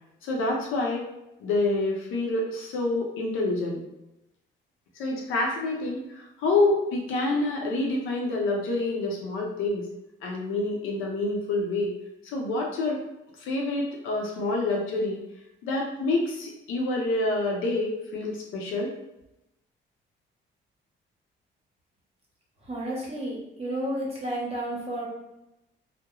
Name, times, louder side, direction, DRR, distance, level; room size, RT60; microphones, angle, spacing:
voice 1, 0.2-1.0 1.4-3.8 5.0-9.9 10.2-11.9 12.2-13.0 13.4-15.2 15.6-18.9, left 2 dB, 85° left, -1 dB, 0.6 m, -27 dB
voice 2, 22.6-25.1, right 1 dB, 30° right, -3 dB, 0.9 m, -31 dB
2.3 x 2.1 x 2.9 m, 0.89 s
cardioid pair, 90°, 20 cm